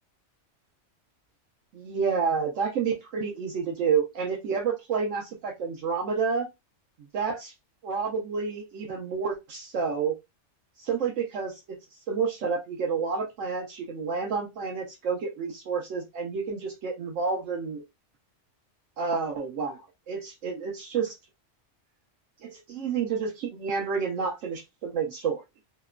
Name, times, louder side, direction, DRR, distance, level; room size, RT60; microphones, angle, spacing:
voice 1, 1.7-6.5 7.1-7.5 7.8-10.2 10.8-11.6 12.1-17.8 19.0-21.1 22.4-25.4, right 5 dB, 80° right, -1 dB, 1.0 m, -29 dB
2.9 x 2.1 x 2.3 m, 0.21 s
omnidirectional pair, 1.3 m